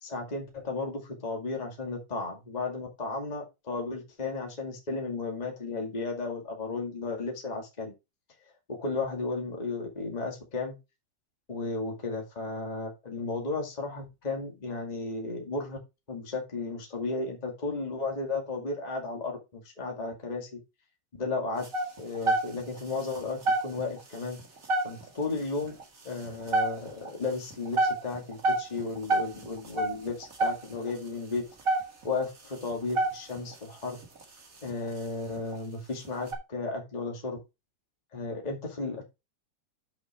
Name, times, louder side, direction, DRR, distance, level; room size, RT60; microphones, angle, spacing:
voice 1, 0.0-7.9 8.7-10.7 11.5-15.8 16.1-20.6 21.2-21.7 22.0-24.4 24.8-25.7 26.0-31.4 32.0-34.0 34.6-37.4 38.1-39.0, left 3 dB, 85° left, 1 dB, 0.3 m, -34 dB
sound 1, 21.6-22.8 23.2-23.3 23.4-24.0 24.4-25.2 25.6-25.8 26.2-27.1 27.5-30.9 31.4-31.5 31.7-32.2 32.7-33.5 34.0-34.2 34.7-34.9 35.4-35.6 36.0-36.3, right 2 dB, 50° right, 0.9 m, -27 dB
7.9 x 6.0 x 4.4 m, 0.25 s
omnidirectional pair, 5.1 m